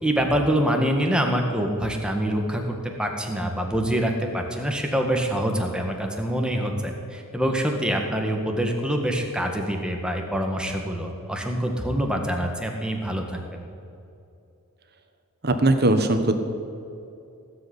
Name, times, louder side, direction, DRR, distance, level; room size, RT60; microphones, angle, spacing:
voice 1, 0.0-13.6, equal, 5° right, 2 dB, 1.7 m, -25 dB
voice 2, 15.4-16.3, right 2 dB, 45° right, 7 dB, 1.4 m, -19 dB
17.5 x 7.9 x 10.0 m, 2.7 s
head